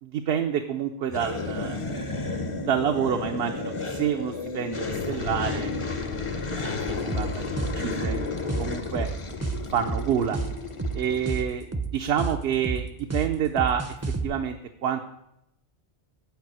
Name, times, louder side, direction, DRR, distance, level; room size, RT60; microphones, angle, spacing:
voice 1, 0.0-1.8 2.6-6.2 6.5-8.2 8.6-9.1 9.7-10.4 10.9-11.7 11.9-14.0 14.2-14.6 14.8-15.0, right 8 dB, 70° right, 5 dB, 0.9 m, -28 dB
sound 1, 1.1-11.4, left 4 dB, 35° left, 0.7 m, -32 dB
sound 2, 6.9-14.3, right 4 dB, 20° right, 0.5 m, -30 dB
9.1 x 4.8 x 7.4 m, 0.83 s
omnidirectional pair, 1.1 m